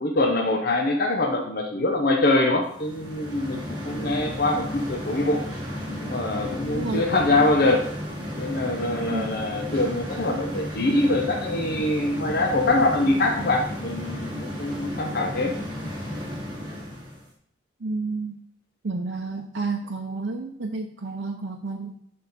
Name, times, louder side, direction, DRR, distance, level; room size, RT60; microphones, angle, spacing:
voice 1, 0.0-5.5 6.0-7.9 8.4-15.6, left 2 dB, 50° left, 2 dB, 0.8 m, -24 dB
sound 1, 2.7-17.2, equal, 25° right, 2.4 m, -33 dB
voice 2, 17.8-18.4 18.8-21.9, right 3 dB, 65° right, 0 dB, 0.6 m, -30 dB
6.6 x 5.6 x 4.1 m, 0.69 s
head